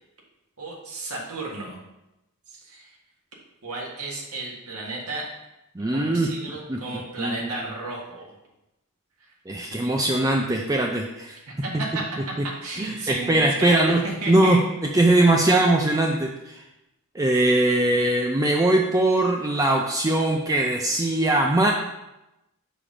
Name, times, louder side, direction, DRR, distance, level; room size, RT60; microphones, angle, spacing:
voice 1, 0.6-1.8 2.5-3.0 3.6-5.3 5.9-8.4 9.7-9.9 11.5-12.1 12.4-14.6 15.3-15.4, right 2 dB, 75° right, -3 dB, 1.7 m, -33 dB
voice 2, 5.8-6.8 7.2-7.5 9.5-11.4 11.7-11.8 12.8-14.0 14.3-14.6 14.9-16.6 17.1-21.7, right 1 dB, 15° right, 1 dB, 0.5 m, -21 dB
5.7 x 5.1 x 4.9 m, 0.92 s
head